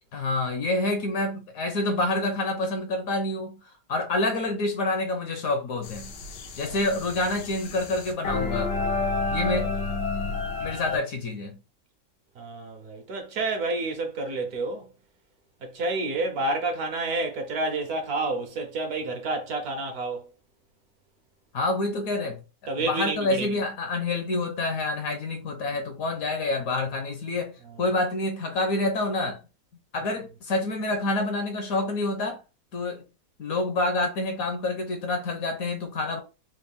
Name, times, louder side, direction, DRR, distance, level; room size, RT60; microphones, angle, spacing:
voice 1, 0.1-3.6 3.9-6.1 6.6-8.7 9.3-9.7 10.6-11.6 21.5-22.4 22.9-29.4 29.9-32.4 32.7-33.0 33.4-36.2, left 2 dB, 65° left, 1.0 m, -27 dB
sound 1, 5.8-11.0, left 3 dB, 90° left, 1.4 m, -30 dB
voice 2, 12.3-14.9 15.6-20.3 22.7-23.5 27.6-27.8, right 2 dB, 65° right, 1.3 m, -29 dB
4.1 x 2.3 x 3.5 m
omnidirectional pair, 1.9 m